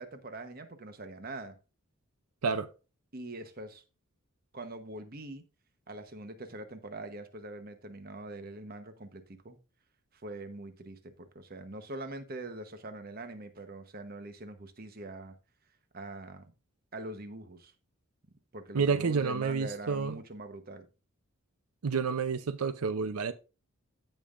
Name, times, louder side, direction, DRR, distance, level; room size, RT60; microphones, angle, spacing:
voice 1, 0.0-1.6 3.1-3.8 4.5-5.4 5.9-9.6 10.2-15.3 15.9-16.4 16.9-17.7 18.5-20.9, right 2 dB, 40° right, 1.1 m, -43 dB
voice 2, 18.7-20.2 21.8-23.3, right 5 dB, 85° right, 0.6 m, -29 dB
15.5 x 5.5 x 2.5 m
head